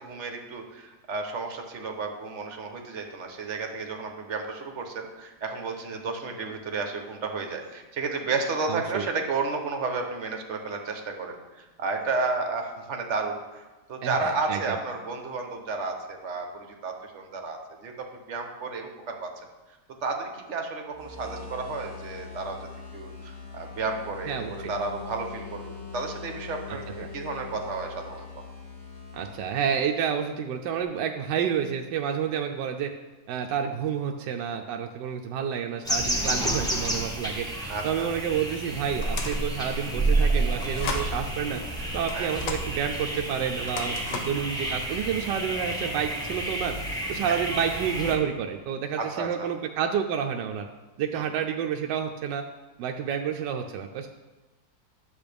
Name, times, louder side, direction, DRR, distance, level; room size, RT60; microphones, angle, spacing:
voice 1, 0.0-13.6 13.9-19.3 20.0-22.6 22.9-28.3 37.7-38.1 42.1-42.3 47.3-47.4 49.0-49.5 51.1-51.2, right 4 dB, 45° right, 3 dB, 1.2 m, -32 dB
voice 2, 8.7-9.0 14.0-14.8 24.3-24.7 29.1-32.9 33.3-37.5 37.8-41.6 41.9-50.7 51.0-52.4 52.8-54.1, right 8 dB, 80° right, 3 dB, 1.2 m, -29 dB
sound 1, 20.9-30.4, left 5 dB, 40° left, 3.1 m, -42 dB
sound 2, 35.8-48.2, right 1 dB, ahead, 1.2 m, -30 dB
sound 3, 39.0-39.5 40.6-41.1 42.1-42.7 43.6-44.4, left 4 dB, 80° left, 1.5 m, -34 dB
10.5 x 7.5 x 3.4 m, 1.2 s
omnidirectional pair, 1.9 m